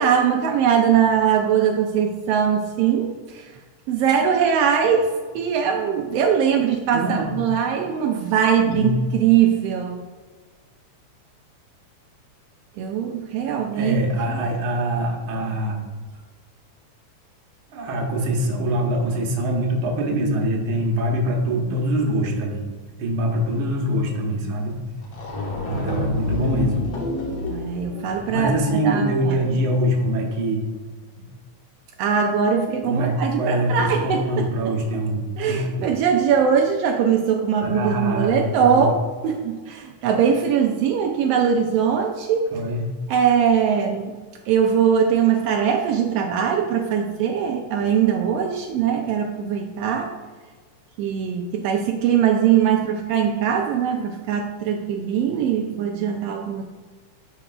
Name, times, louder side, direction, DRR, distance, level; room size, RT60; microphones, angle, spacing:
voice 1, 0.0-3.5 3.9-10.0 12.8-14.0 27.5-29.4 32.0-34.7 35.4-39.0 39.2-42.4 43.1-44.1 44.5-50.1 51.0-56.6, right 7 dB, 80° right, 2 dB, 1.4 m, -21 dB
voice 2, 6.9-7.3 8.6-8.9 13.7-15.8 17.7-22.6 23.0-24.8 25.7-26.8 28.3-30.6 32.8-35.9 37.6-38.9 42.5-42.8, equal, 55° right, 0 dB, 1.6 m, -24 dB
sound 1, 24.7-24.8 25.0-28.8, left 2 dB, 60° left, 2.2 m, -29 dB
11.5 x 4.8 x 2.3 m, 1.4 s
omnidirectional pair, 3.3 m